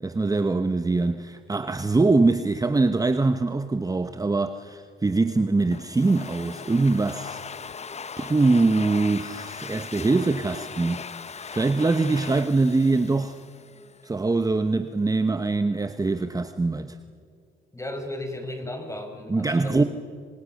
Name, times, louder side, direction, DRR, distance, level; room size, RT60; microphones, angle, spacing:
voice 1, 0.0-7.4 8.2-11.1 11.5-13.4 14.0-17.0 19.3-19.8, right 3 dB, 20° right, 1.0 m, -23 dB
Domestic sounds home sounds, 5.7-14.1, left 6 dB, 35° left, 0.9 m, -39 dB
voice 2, 17.7-19.9, left 1 dB, 15° left, 5.1 m, -35 dB
29.0 x 27.0 x 6.5 m
cardioid pair, 90°, 20 cm